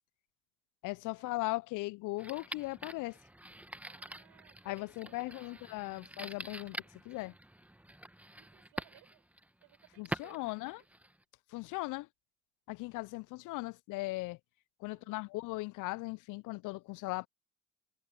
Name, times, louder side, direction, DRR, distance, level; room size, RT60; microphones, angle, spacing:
voice 1, 0.8-3.2 4.6-6.8 7.1-7.3 10.0-10.8 11.5-12.1 12.7-14.4 14.8-17.3, left 22 dB, 60° left, 0.5 m, -38 dB
sound 1, 2.2-11.2, right 1 dB, 5° right, 1.5 m, -46 dB
voice 2, 3.8-5.6 6.0-6.1 8.4-9.2 9.6-10.8 14.9-15.2, right 19 dB, 70° right, 7.1 m, -62 dB
hypercardioid pair, 60°, 35 cm